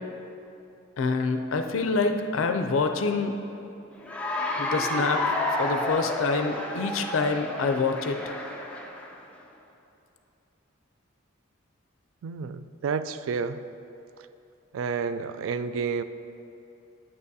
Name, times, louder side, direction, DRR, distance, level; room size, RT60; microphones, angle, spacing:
voice 1, 1.0-3.4 4.6-5.3 5.6-8.4, left 4 dB, 70° left, 6 dB, 0.4 m, -26 dB
Cheering / Applause, 4.0-9.2, left 1 dB, 5° left, 0.5 m, -30 dB
voice 2, 12.2-13.6 14.7-16.0, right 5 dB, 75° right, 13 dB, 0.3 m, -30 dB
8.8 x 8.6 x 2.7 m, 2.8 s
head